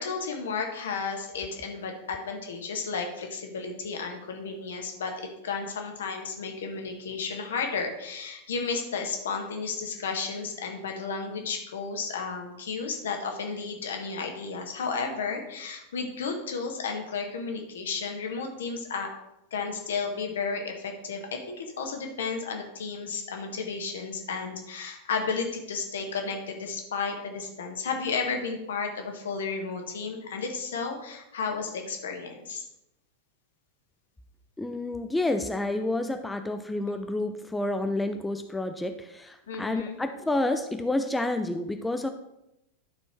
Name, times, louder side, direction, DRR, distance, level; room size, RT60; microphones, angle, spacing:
voice 1, 0.0-19.1 19.5-32.7 39.5-40.0, left 5 dB, 65° left, 3 dB, 1.4 m, -33 dB
voice 2, 34.6-42.1, left 2 dB, 5° left, 7 dB, 0.5 m, -29 dB
11.5 x 4.5 x 4.3 m, 0.87 s
figure-of-eight pair, 90°, 0 cm